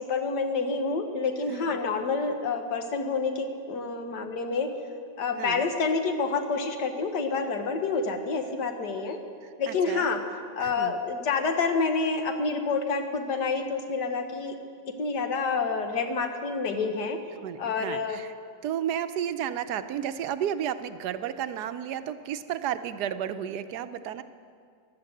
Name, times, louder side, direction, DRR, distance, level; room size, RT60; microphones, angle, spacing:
voice 1, 0.0-4.7 5.2-9.2 9.6-10.2 10.6-14.6 14.9-17.2 17.6-18.2, left 4 dB, 80° left, 6 dB, 1.8 m, -28 dB
voice 2, 1.5-1.8 5.4-5.7 9.7-10.1 10.6-10.9 17.4-18.3 18.6-24.2, right 9 dB, 80° right, 11 dB, 1.2 m, -32 dB
15.0 x 11.0 x 7.8 m, 2.2 s
omnidirectional pair, 1.8 m